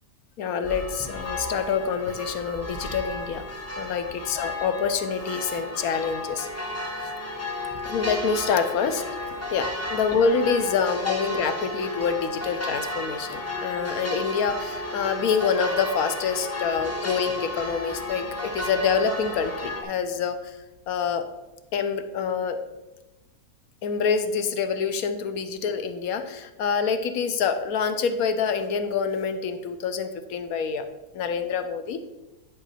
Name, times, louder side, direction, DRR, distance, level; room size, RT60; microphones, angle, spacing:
voice 1, 0.4-3.4 3.8-6.5 7.8-9.0 9.5-20.5 20.9-21.2 21.7-22.6 23.8-30.9 31.1-32.0, left 6 dB, 65° left, 9 dB, 1.0 m, -26 dB
sound 1, 0.6-19.8, left 1 dB, 15° left, 0.5 m, -33 dB
10.0 x 4.7 x 4.1 m, 1.0 s
omnidirectional pair, 1.8 m